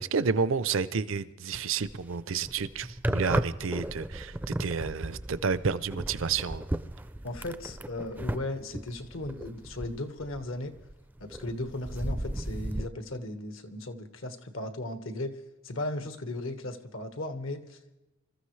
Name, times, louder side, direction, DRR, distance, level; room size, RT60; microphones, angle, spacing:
voice 1, 0.0-6.6, right 5 dB, 75° right, 0.6 m, -30 dB
sound 1, 1.8-2.1 2.4-10.9 11.2-12.9, right 1 dB, 10° right, 0.4 m, -35 dB
voice 2, 7.2-10.8 11.2-15.4 15.6-17.9, left 1 dB, 75° left, 1.5 m, -36 dB
26.0 x 14.0 x 3.3 m
head